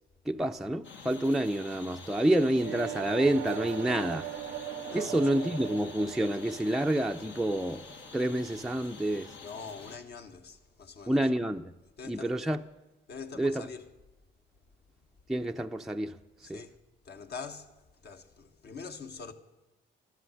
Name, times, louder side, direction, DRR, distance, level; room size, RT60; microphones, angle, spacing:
voice 1, 0.3-4.3 4.9-7.9 8.1-9.3 11.1-11.7 12.1-12.6 13.4-13.6 15.3-16.2 16.5-16.6, right 1 dB, ahead, 0.5 m, -28 dB
sound 1, 0.8-10.0, left 5 dB, 70° left, 1.6 m, -48 dB
sound 2, 2.5-8.5, right 13 dB, 85° right, 0.6 m, -40 dB
voice 2, 4.9-5.3 9.4-11.3 12.0-12.3 13.1-13.8 16.4-16.8 17.0-19.3, left 5 dB, 55° left, 1.4 m, -44 dB
13.0 x 11.5 x 7.7 m
cardioid pair, 90°, 20 cm